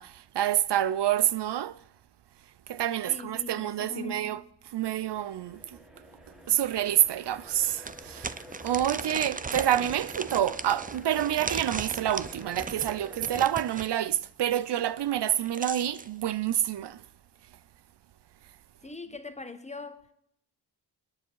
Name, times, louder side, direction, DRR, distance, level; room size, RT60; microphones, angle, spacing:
voice 1, 0.0-1.8 2.7-4.4 4.7-5.6 6.5-8.3 8.6-17.0, right 11 dB, 75° right, 0.6 m, -28 dB
voice 2, 3.1-4.3 18.8-20.1, left 4 dB, 15° left, 1.2 m, -41 dB
sound 1, 4.9-13.4, left 1 dB, ahead, 1.7 m, -49 dB
sound 2, 6.4-6.5 6.9-7.0 7.8-13.9 15.2-16.1, right 4 dB, 20° right, 0.5 m, -37 dB
27.0 x 9.7 x 4.7 m
wide cardioid pair, 135°, 42 cm